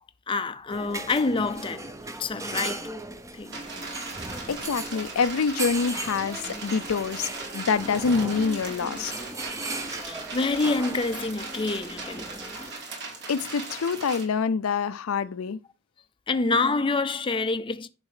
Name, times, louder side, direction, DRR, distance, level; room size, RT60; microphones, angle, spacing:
voice 1, 0.3-1.9 2.2-2.9 3.3-3.6 10.1-12.3 16.3-17.9, left 3 dB, 25° left, 0.5 m, -27 dB
sound 1, 0.7-12.7, right 2 dB, 15° right, 0.7 m, -37 dB
sound 2, 3.5-14.2, right 3 dB, 55° right, 3.0 m, -39 dB
voice 2, 4.5-9.3 13.3-15.6, left 5 dB, 75° left, 0.5 m, -26 dB
10.5 x 4.3 x 4.9 m
head